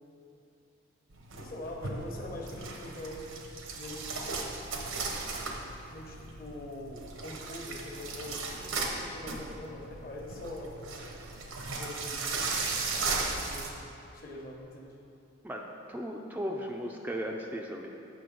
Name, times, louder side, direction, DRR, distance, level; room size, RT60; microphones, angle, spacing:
sound 1, 1.1-13.7, right 3 dB, 90° right, 1.0 m, -36 dB
voice 1, 1.4-3.2 3.7-4.5 5.9-10.9 11.8-12.7 13.4-13.7 14.1-14.9, left 1 dB, 45° left, 0 dB, 1.1 m, -43 dB
voice 2, 15.4-17.9, equal, 10° right, 0 dB, 0.4 m, -36 dB
7.6 x 6.3 x 5.2 m, 2.8 s
head